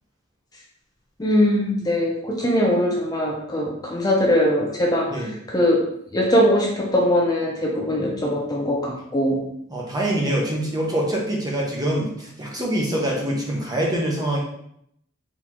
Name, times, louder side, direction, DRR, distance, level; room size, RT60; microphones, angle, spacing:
voice 1, 1.2-5.1 5.5-5.8 6.1-9.4, left 1 dB, 20° left, -2 dB, 0.6 m, -21 dB
voice 2, 9.7-14.4, right 1 dB, 20° right, -2 dB, 1.0 m, -24 dB
4.1 x 3.6 x 3.0 m, 0.73 s
head